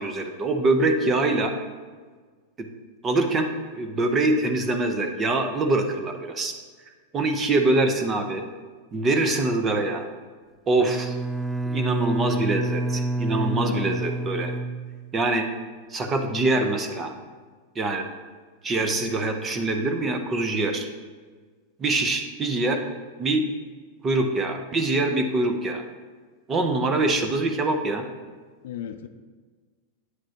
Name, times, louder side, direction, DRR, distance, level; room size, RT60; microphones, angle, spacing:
voice 1, 0.0-1.5 2.6-2.7 3.0-6.5 7.1-8.4 8.9-10.1 10.7-11.2 11.7-14.5 15.1-15.5 15.9-17.1 17.8-18.1 18.6-20.9 21.8-22.8 23.2-23.4 24.0-25.8 26.5-28.1, right 2 dB, 20° right, 6 dB, 0.7 m, -24 dB
Bowed string instrument, 10.8-15.5, right 2 dB, ahead, 0.3 m, -29 dB
voice 2, 13.5-13.9 28.6-29.1, left 9 dB, 70° left, 9 dB, 0.5 m, -36 dB
9.3 x 5.9 x 2.9 m, 1.5 s
supercardioid pair, 155°, 0 cm